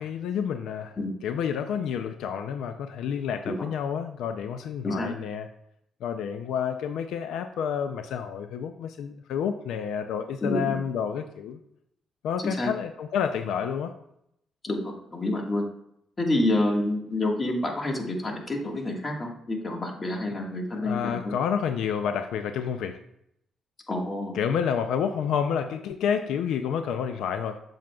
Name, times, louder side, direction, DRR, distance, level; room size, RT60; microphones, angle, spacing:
voice 1, 0.0-1.0 1.2-5.5 6.0-11.6 12.2-13.9 20.7-23.0 24.3-27.6, left 7 dB, 85° left, 8 dB, 0.4 m, -29 dB
voice 2, 10.4-10.8 12.4-12.7 14.6-15.6 16.2-21.3 23.9-24.3, left 1 dB, 30° left, 1 dB, 1.6 m, -28 dB
7.5 x 7.3 x 2.3 m, 0.74 s
cardioid pair, 90°, 0 cm